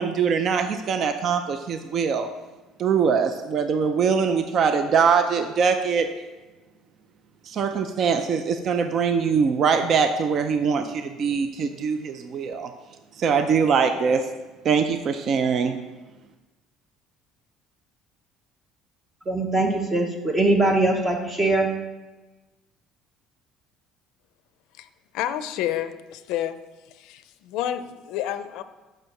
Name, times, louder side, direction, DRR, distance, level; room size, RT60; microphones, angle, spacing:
voice 1, 0.0-2.3 2.8-6.1 7.5-12.7 13.2-14.2 14.6-15.8, right 6 dB, 45° right, 8 dB, 0.4 m, -22 dB
voice 2, 19.3-21.7, right 2 dB, 20° right, 2 dB, 0.8 m, -22 dB
voice 3, 25.1-26.6 26.9-28.6, left 11 dB, 75° left, 11 dB, 0.4 m, -29 dB
6.0 x 4.6 x 6.4 m, 1.1 s
cardioid pair, 145°, 0 cm